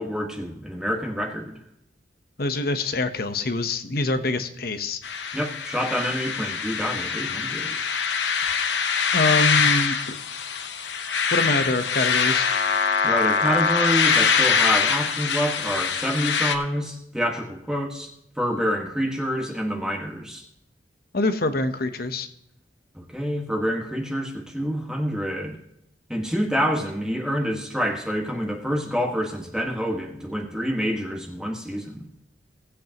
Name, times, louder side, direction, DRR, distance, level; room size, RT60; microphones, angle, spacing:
voice 1, 0.0-1.6 5.3-7.8 13.0-18.1 18.4-20.4 22.9-25.6 26.1-32.0, equal, 5° right, 0 dB, 1.5 m, -27 dB
voice 2, 2.4-5.0 9.1-10.2 11.3-12.5 21.1-22.3, left 2 dB, 55° left, 9 dB, 1.0 m, -25 dB
sound 1, 5.0-16.5, left 5 dB, 80° left, 0.9 m, -23 dB
19.0 x 8.3 x 2.9 m, 0.80 s
head